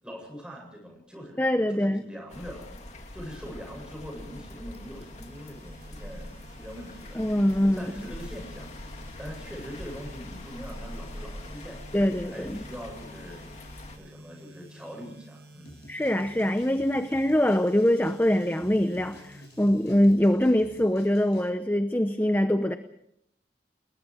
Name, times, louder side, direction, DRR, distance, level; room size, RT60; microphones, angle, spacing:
voice 1, 0.0-7.2 7.6-11.8 12.3-15.8, equal, 5° right, 1 dB, 7.9 m, -43 dB
voice 2, 1.4-2.0 7.2-7.9 11.9-12.6 15.9-22.8, left 1 dB, 10° left, 8 dB, 0.8 m, -23 dB
sound 1, 2.3-14.0, left 1 dB, 40° left, 2.9 m, -43 dB
sound 2, 4.7-20.7, equal, 75° right, 5.9 m, -52 dB
sound 3, 15.6-21.5, left 1 dB, 70° left, 5.5 m, -51 dB
29.5 x 20.5 x 5.0 m, 0.75 s
head